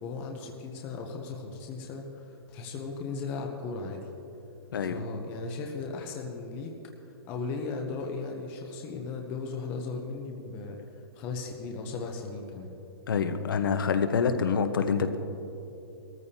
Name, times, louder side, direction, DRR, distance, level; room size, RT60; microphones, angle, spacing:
voice 1, 0.0-4.1 4.8-6.7 7.3-10.8 11.1-12.7, left 4 dB, 15° left, 2 dB, 0.6 m, -36 dB
voice 2, 4.7-5.2 13.1-15.2, left 6 dB, 60° left, 8 dB, 1.0 m, -27 dB
20.5 x 14.0 x 2.8 m, 2.8 s
hypercardioid pair, 175°, 13 cm